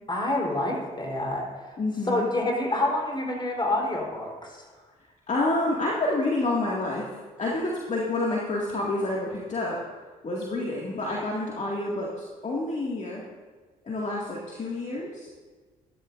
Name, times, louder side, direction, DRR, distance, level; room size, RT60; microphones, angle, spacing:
voice 1, 0.1-1.8 2.1-4.7, left 1 dB, 25° left, -1 dB, 3.8 m, -28 dB
voice 2, 1.8-2.3 5.3-7.0 7.4-9.8 10.2-13.2 13.8-15.3, left 2 dB, 40° left, -4 dB, 2.2 m, -28 dB
14.5 x 12.5 x 2.6 m, 1.4 s
hypercardioid pair, 45°, 18 cm